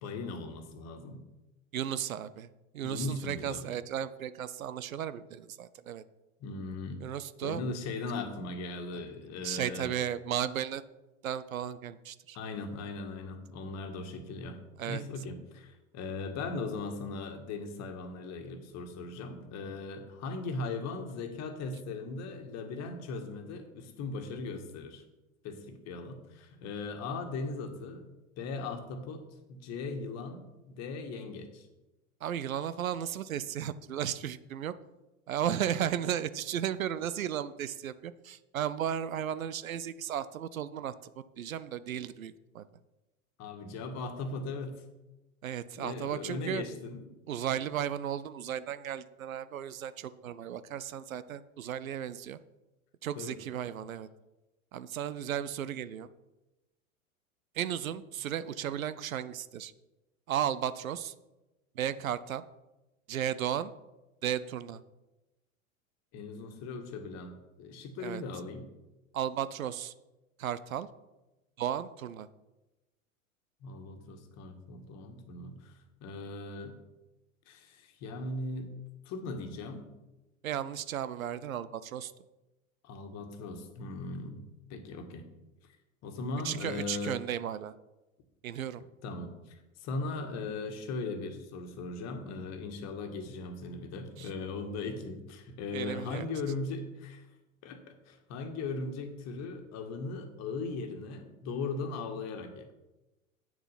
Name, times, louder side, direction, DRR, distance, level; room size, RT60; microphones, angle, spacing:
voice 1, 0.0-1.2 2.8-3.7 6.4-7.0 7.4-10.0 12.3-14.6 14.9-25.0 25.4-28.0 28.4-31.7 43.4-44.8 45.7-47.0 53.2-53.4 66.1-68.6 73.6-76.8 77.5-78.7 79.1-79.9 82.8-84.4 84.7-85.3 86.0-87.2 89.0-97.3 97.6-102.7, left 3 dB, 40° left, 6 dB, 1.7 m, -38 dB
voice 2, 1.7-2.5 2.7-6.0 7.0-7.6 8.9-9.0 9.4-10.8 11.2-12.4 14.8-15.0 32.2-34.7 35.3-40.9 41.4-42.7 45.4-46.6 47.3-52.4 53.0-54.1 54.7-56.1 57.6-59.7 60.3-61.1 61.8-62.4 63.1-63.7 64.2-64.8 68.0-68.2 69.1-69.9 70.4-70.9 71.6-72.3 80.4-82.1 86.4-87.7 88.4-88.8 94.2-94.3 95.7-96.3, right 10 dB, 75° right, 15 dB, 0.6 m, -34 dB
8.9 x 6.8 x 5.8 m, 1.0 s
figure-of-eight pair, 90°, 41 cm